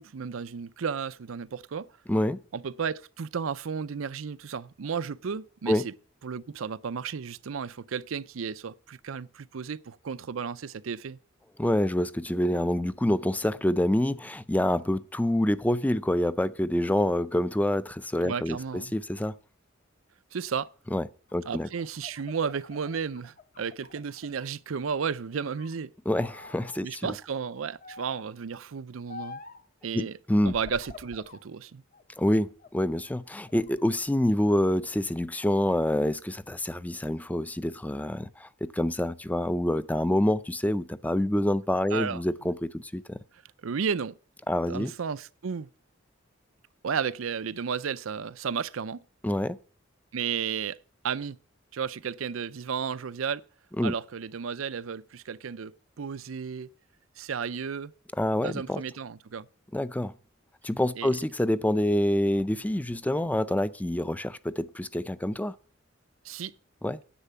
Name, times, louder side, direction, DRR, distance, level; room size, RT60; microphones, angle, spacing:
voice 1, 0.0-1.9 2.5-5.9 6.2-11.2 18.2-18.9 20.3-20.7 21.5-25.9 26.8-29.4 29.8-30.1 30.4-31.8 41.9-42.2 43.6-44.2 44.7-45.7 46.8-49.0 50.1-50.8 51.0-51.4 51.7-53.4 53.8-56.7 57.2-57.9 58.4-59.5 61.0-61.2 66.2-66.5, right 6 dB, 85° right, 0.5 m, -33 dB
voice 2, 2.1-2.4 5.7-5.9 11.6-19.3 20.9-21.1 21.3-21.7 26.1-27.2 29.9-30.5 32.2-43.2 44.5-44.9 49.2-49.6 53.8-53.9 58.2-58.8 59.7-60.1 60.6-65.5 66.8-67.0, left 1 dB, 10° left, 0.5 m, -27 dB
sound 1, 21.3-24.5 24.9-25.8 26.2-26.8 27.8-28.3 29.1-29.6 30.4-31.4 31.9-32.9 33.3-34.0, left 4 dB, 45° left, 1.0 m, -47 dB
10.0 x 8.3 x 6.8 m
head